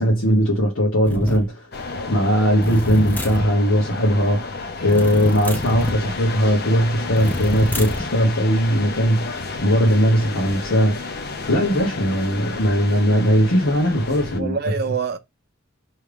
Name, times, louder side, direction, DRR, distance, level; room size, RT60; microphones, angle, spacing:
voice 1, 0.0-11.0 11.5-14.6 14.8-14.9, equal, 75° left, 1.3 m, -19 dB
sound 1, 1.0-1.5 2.6-3.5 4.9-6.0 7.2-8.1, left 1 dB, 10° left, 0.5 m, -27 dB
sound 2, 1.7-14.4, left 3 dB, 50° left, 0.7 m, -32 dB
voice 2, 5.0-5.4 14.4-15.2, right 6 dB, 50° right, 0.6 m, -27 dB
3.4 x 3.1 x 4.9 m
head